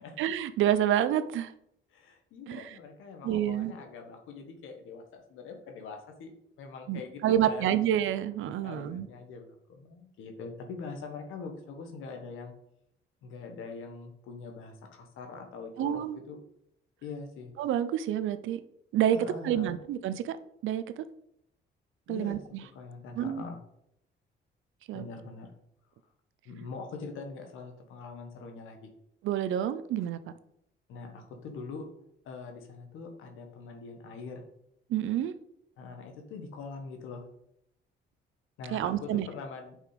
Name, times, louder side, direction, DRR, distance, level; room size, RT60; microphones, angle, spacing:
voice 1, 0.2-1.5 2.5-2.7 3.2-3.7 6.9-9.1 15.8-16.2 17.6-18.6 18.9-19.2 19.4-20.4 20.6-21.1 22.1-22.6 23.1-23.4 24.9-25.1 29.2-30.2 34.9-35.3 38.7-39.3, right 11 dB, 80° right, 13 dB, 0.7 m, -28 dB
voice 2, 1.9-6.3 6.6-8.0 8.6-12.5 13.2-16.4 17.0-17.5 19.1-19.8 22.1-22.4 22.7-23.6 24.9-25.5 26.4-28.9 30.9-31.9 32.2-34.4 35.8-37.2 38.6-39.8, left 4 dB, 90° left, 4 dB, 1.5 m, -43 dB
8.3 x 5.5 x 5.1 m, 0.77 s
cardioid pair, 90°, 20 cm